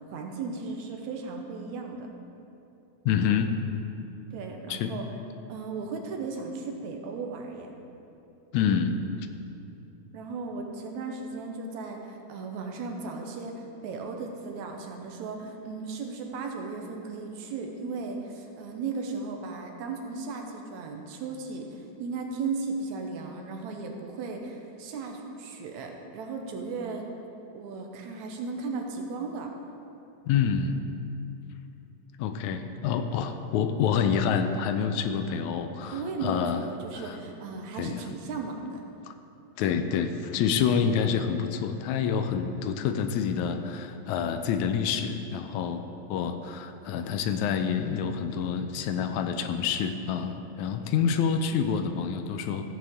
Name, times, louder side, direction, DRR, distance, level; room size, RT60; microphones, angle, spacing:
voice 1, 0.0-2.1 4.3-5.0 5.5-7.7 10.1-27.0 27.5-29.5 35.9-38.8, right 4 dB, 80° right, 2 dB, 2.2 m, -36 dB
voice 2, 3.1-3.5 4.7-5.0 8.5-9.0 30.3-30.8 32.2-36.6 36.9-37.2 37.7-38.0 39.1-39.2 39.6-45.8 46.1-52.6, left 7 dB, 85° left, 8 dB, 1.9 m, -27 dB
15.5 x 7.8 x 3.6 m, 2.8 s
omnidirectional pair, 3.3 m